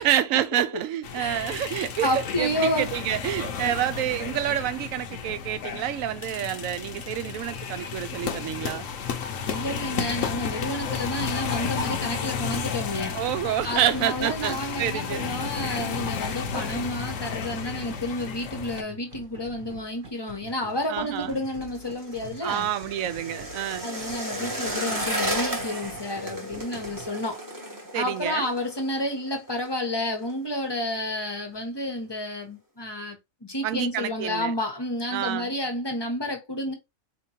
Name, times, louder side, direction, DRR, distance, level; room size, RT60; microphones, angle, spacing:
voice 1, 0.0-8.9 13.1-15.3 20.9-21.4 22.4-23.9 27.9-28.5 33.6-34.5 35.1-35.5, right 11 dB, 75° right, 0.9 m, -28 dB
sound 1, 1.0-18.8, left 6 dB, 65° left, 1.0 m, -32 dB
voice 2, 1.2-2.9 3.6-3.7 9.5-13.2 13.6-22.7 23.8-27.4 27.9-36.7, left 1 dB, 25° left, 0.7 m, -30 dB
sound 2, 12.3-27.1, right 1 dB, 45° right, 1.0 m, -46 dB
sound 3, 20.7-29.7 30.0-30.4 30.6-31.2 31.5-31.6, right 1 dB, 15° right, 0.8 m, -34 dB
4.4 x 2.9 x 2.7 m
omnidirectional pair, 1.5 m